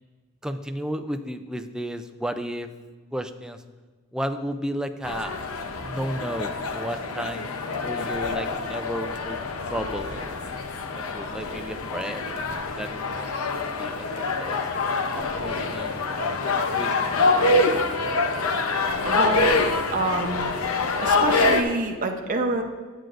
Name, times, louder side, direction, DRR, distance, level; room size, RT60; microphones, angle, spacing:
voice 1, 0.4-2.7 3.1-3.6 4.1-5.3 5.8-9.4 9.7-10.4 11.0-14.1 14.4-14.6 15.4-16.0 16.8-17.1, equal, 5° right, 8 dB, 0.3 m, -33 dB
sound 1, 5.0-21.6, left 3 dB, 80° left, 0.7 m, -25 dB
voice 2, 19.0-19.6 19.9-20.5 21.0-22.6, right 2 dB, 40° right, 2 dB, 0.7 m, -26 dB
9.4 x 9.0 x 2.5 m, 1.4 s
head